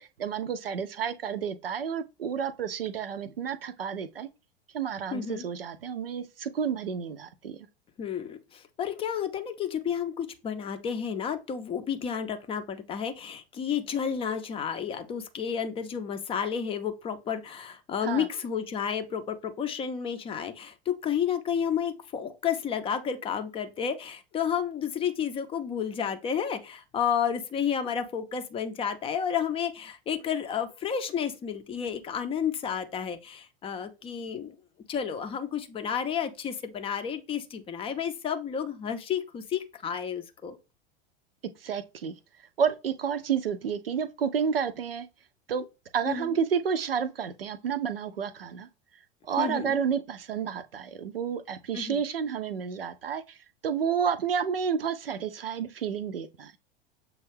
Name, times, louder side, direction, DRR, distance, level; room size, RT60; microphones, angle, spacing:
voice 1, 0.0-4.3 4.7-7.7 18.0-18.3 41.6-42.1 42.6-45.1 45.5-45.7 45.9-48.7 49.2-53.4 53.6-56.5, right 7 dB, 75° right, 0.5 m, -30 dB
voice 2, 5.1-5.5 8.0-34.6 34.9-40.6 46.1-46.3 49.4-49.8 51.7-52.0, left 7 dB, 20° left, 0.5 m, -31 dB
6.7 x 2.3 x 3.3 m
figure-of-eight pair, 85°, 29 cm